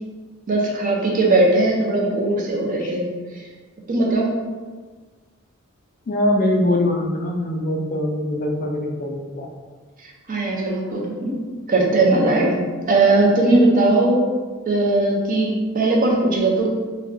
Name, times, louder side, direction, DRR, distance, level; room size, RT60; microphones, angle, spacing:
voice 1, 0.5-3.0 3.9-4.3 10.3-11.3 11.7-12.6 12.9-14.2 14.7-16.7, right 2 dB, 40° right, -2 dB, 0.5 m, -18 dB
voice 2, 6.1-9.5, left 1 dB, 40° left, 0 dB, 0.3 m, -22 dB
2.2 x 2.2 x 3.6 m, 1.4 s
head